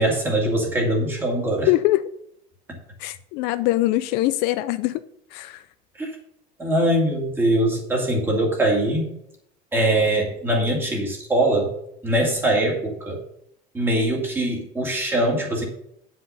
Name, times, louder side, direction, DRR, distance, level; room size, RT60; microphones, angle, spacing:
voice 1, 0.0-1.7 6.0-6.1 6.6-9.2 9.7-11.7 12.0-13.2 13.7-15.6, right 1 dB, 10° right, 0 dB, 2.1 m, -22 dB
voice 2, 1.7-2.1 3.0-5.0 5.3-5.6, left 17 dB, 55° left, 12 dB, 0.4 m, -22 dB
9.5 x 5.8 x 5.5 m, 0.74 s
cardioid pair, 175°, 19 cm